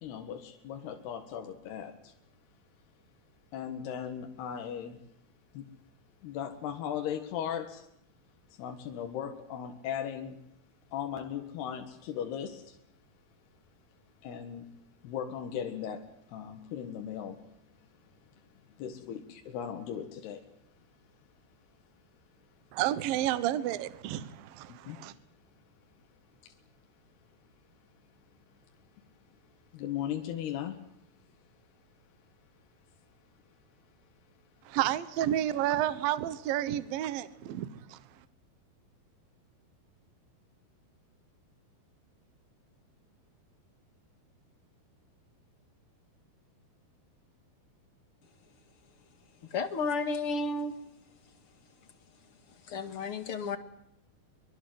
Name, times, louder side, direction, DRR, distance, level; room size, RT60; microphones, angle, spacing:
voice 1, 0.0-2.1 3.5-5.0 5.5-5.7 6.2-7.9 8.6-10.4 10.9-12.8 14.2-14.7 15.0-17.4 18.8-20.4 24.9-25.0 26.4-26.6 29.7-30.8, left 9 dB, 80° left, 3.7 m, -37 dB
voice 2, 22.7-25.1 34.7-38.0, right 12 dB, 70° right, 2.7 m, -31 dB
voice 3, 49.5-50.8 52.7-53.6, left 3 dB, 45° left, 2.2 m, -32 dB
24.5 x 23.5 x 7.8 m
omnidirectional pair, 4.6 m